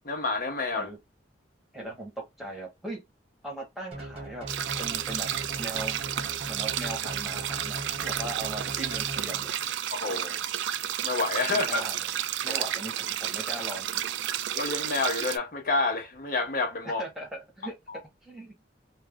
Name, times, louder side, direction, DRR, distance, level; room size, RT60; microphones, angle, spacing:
voice 1, 0.0-0.9 9.9-10.4 11.0-11.8 14.5-17.0, left 3 dB, 50° left, 0.9 m, -28 dB
voice 2, 1.7-2.1 2.4-3.0 3.4-4.5 4.8-5.3 5.6-6.0 6.4-9.6 11.5-12.2 12.4-14.1 16.8-17.7 18.2-18.6, right 1 dB, ahead, 1.1 m, -39 dB
sound 1, 3.9-9.7, right 1 dB, 35° right, 0.6 m, -40 dB
sound 2, 4.5-15.4, right 11 dB, 75° right, 0.3 m, -32 dB
2.5 x 2.1 x 3.4 m
head